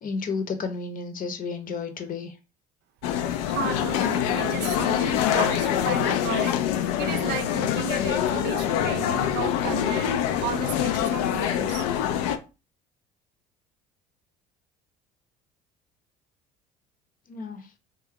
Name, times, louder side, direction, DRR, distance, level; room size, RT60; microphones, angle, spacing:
voice 1, 0.0-2.4 17.3-17.7, left 4 dB, 40° left, 0.8 m, -32 dB
sound 1, 3.0-12.4, left 10 dB, 70° left, 0.4 m, -25 dB
voice 2, 3.5-6.5 7.0-11.9, right 10 dB, 55° right, 0.4 m, -34 dB
2.8 x 2.3 x 3.5 m
hypercardioid pair, 65°, 21 cm